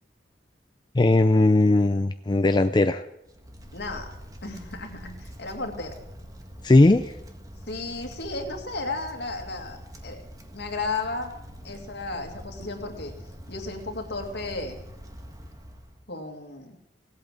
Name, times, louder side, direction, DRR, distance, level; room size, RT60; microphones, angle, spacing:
voice 1, 0.9-3.0 6.6-7.1, left 2 dB, 25° left, 8 dB, 0.5 m, -18 dB
Wind, 3.2-16.1, equal, 20° right, 1.6 m, -44 dB
voice 2, 3.7-4.1 4.4-6.0 7.7-10.3 10.5-11.3 11.6-14.8 16.1-16.8, left 3 dB, 70° left, 3 dB, 2.2 m, -34 dB
17.5 x 8.5 x 7.6 m, 0.85 s
head